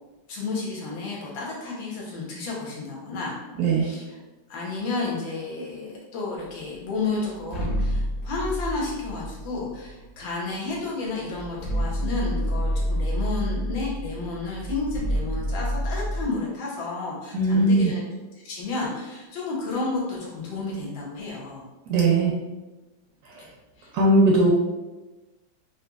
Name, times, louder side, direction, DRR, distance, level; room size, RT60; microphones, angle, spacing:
voice 1, 0.3-3.4 3.8-4.2 4.5-18.0 18.3-21.6 23.4-23.5 23.8-23.9, left 3 dB, 90° left, -4 dB, 1.6 m, -31 dB
sound 1, 7.4-10.1 10.9-11.0 11.3-16.3, equal, 40° left, 0.9 m, -28 dB
voice 2, 17.3-17.9 21.9-22.3 23.9-24.5, right 2 dB, 75° right, -2 dB, 0.8 m, -19 dB
4.2 x 2.6 x 2.3 m, 1.1 s
omnidirectional pair, 2.0 m